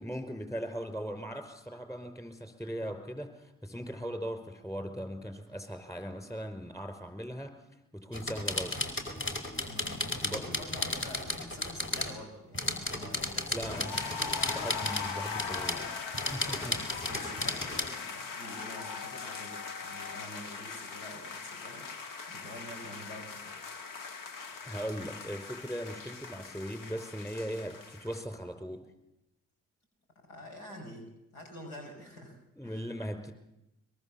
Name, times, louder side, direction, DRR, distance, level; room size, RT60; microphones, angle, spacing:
voice 1, 0.0-7.5 7.9-8.9 10.2-10.5 13.5-14.1 14.5-16.0 16.3-16.8 24.6-28.9 32.6-33.3, equal, 10° left, 7 dB, 5.1 m, -39 dB
sound 1, 8.1-12.1 12.5-15.1 15.4-15.8 16.1-17.9, left 2 dB, 35° left, 4.3 m, -34 dB
voice 2, 9.6-10.0 10.3-14.3 16.5-21.8 22.3-23.6 30.3-32.4 32.6-32.9, left 1 dB, 85° left, 3 dB, 5.5 m, -47 dB
sound 2, 13.6-28.2, left 5 dB, 65° left, 1.8 m, -40 dB
22.5 x 21.5 x 7.2 m, 0.89 s
hypercardioid pair, 45°, 35 cm